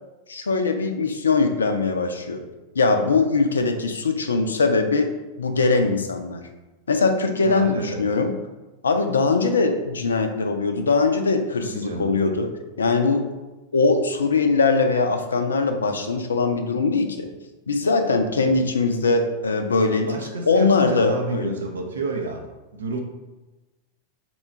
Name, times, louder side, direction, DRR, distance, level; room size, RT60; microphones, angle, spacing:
voice 1, 0.3-2.4 2.8-5.1 5.4-6.4 6.9-8.3 8.8-12.5 12.8-13.3 13.7-17.3 17.7-20.2 20.5-21.6, left 4 dB, 70° left, 6 dB, 0.4 m, -21 dB
voice 2, 7.4-8.0 11.6-12.1 18.4-18.5 20.1-22.4 22.7-23.0, right 3 dB, 70° right, 2 dB, 0.5 m, -30 dB
4.3 x 2.3 x 4.2 m, 1.1 s
figure-of-eight pair, 90°, 0 cm